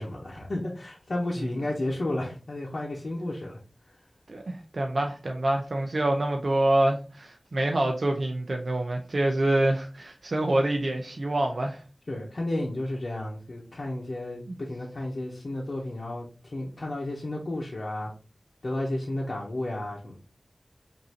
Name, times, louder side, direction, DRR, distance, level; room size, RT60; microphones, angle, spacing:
voice 1, 0.0-3.6 12.1-18.1 18.6-20.2, left 1 dB, 75° left, 0.9 m, -32 dB
voice 2, 4.3-11.8 14.5-14.6, right 1 dB, 75° right, 0.6 m, -26 dB
5.3 x 2.7 x 2.8 m
wide cardioid pair, 45°, 0 cm